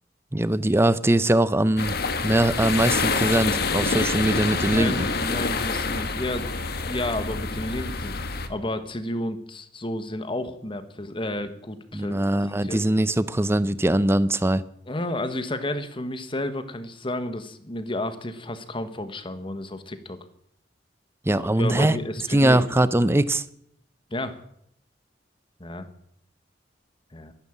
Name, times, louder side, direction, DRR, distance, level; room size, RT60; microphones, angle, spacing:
voice 1, 0.3-2.0 2.2-5.1 11.9-14.6 21.3-22.0 22.3-23.4, right 1 dB, 15° right, 0.6 m, -21 dB
sound 1, 1.8-8.5, left 4 dB, 60° left, 1.4 m, -27 dB
voice 2, 4.7-6.5 6.8-8.1 8.5-12.2 12.6-12.8 14.9-20.2 21.4-22.6 24.1-24.4 25.6-25.9 27.1-27.3, left 1 dB, 30° left, 1.3 m, -31 dB
13.5 x 12.0 x 7.3 m
head